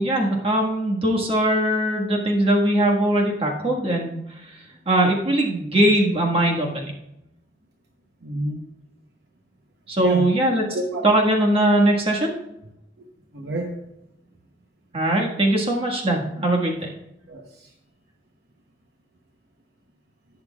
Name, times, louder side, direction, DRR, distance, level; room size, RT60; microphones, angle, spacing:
voice 1, 0.0-4.1 4.8-6.9 9.9-10.6 11.0-12.3 14.9-16.9, right 1 dB, 30° right, -1 dB, 1.6 m, -20 dB
voice 2, 8.2-8.6 10.0-10.3 10.7-11.0 13.0-13.1 13.3-13.7 16.4-16.5 17.3-17.7, right 1 dB, 60° right, 2 dB, 0.9 m, -29 dB
19.0 x 6.6 x 2.4 m, 0.86 s
head